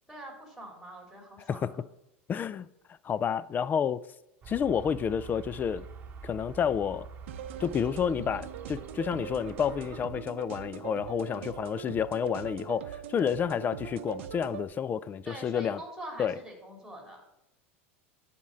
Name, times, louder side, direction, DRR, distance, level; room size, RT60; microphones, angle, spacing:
voice 1, 0.1-1.8 11.2-11.5 15.2-17.2, right 1 dB, ahead, 3.3 m, -44 dB
voice 2, 2.3-2.7 3.0-4.0 4.5-5.8 6.2-7.1 7.6-15.8 16.2-16.4, left 7 dB, 25° left, 0.4 m, -30 dB
sound 1, 4.4-10.1, right 5 dB, 30° right, 1.1 m, -46 dB
sound 2, 7.3-14.6, right 9 dB, 80° right, 0.6 m, -41 dB
11.0 x 4.3 x 6.2 m
hypercardioid pair, 105°, 7 cm